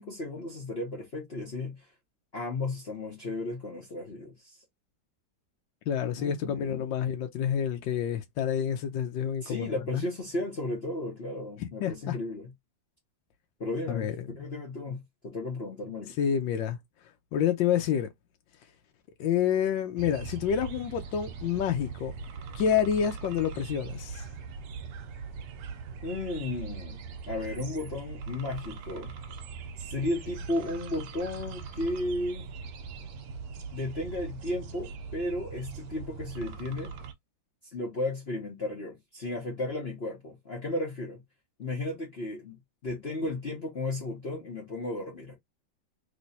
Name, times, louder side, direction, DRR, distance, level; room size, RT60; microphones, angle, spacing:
voice 1, 0.0-1.9 2.3-4.6 6.2-6.9 9.4-12.5 13.6-14.1 14.3-16.3 26.0-27.0 27.3-29.1 29.8-32.5 33.7-36.9 37.7-41.2 41.6-45.4, left 2 dB, 40° left, 1.0 m, -34 dB
voice 2, 5.9-9.7 9.9-10.0 11.6-12.2 13.9-14.3 16.2-16.8 17.3-18.1 19.2-22.1 22.5-24.3, left 8 dB, 75° left, 1.2 m, -28 dB
sound 1, 20.0-37.1, right 5 dB, 70° right, 1.2 m, -41 dB
3.2 x 3.0 x 2.7 m
omnidirectional pair, 2.1 m